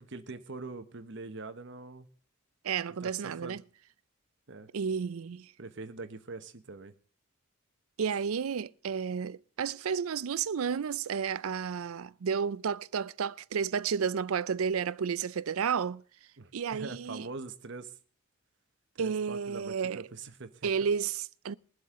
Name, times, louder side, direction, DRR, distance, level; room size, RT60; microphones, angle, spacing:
voice 1, 0.0-2.1 2.9-3.6 4.5-4.7 5.6-6.9 16.4-17.9 18.9-20.9, right 3 dB, 55° right, 1.0 m, -43 dB
voice 2, 2.6-3.6 4.7-5.5 8.0-16.0 16.5-17.3 19.0-20.1 20.6-21.6, right 6 dB, 80° right, 0.5 m, -32 dB
22.0 x 7.9 x 3.7 m
head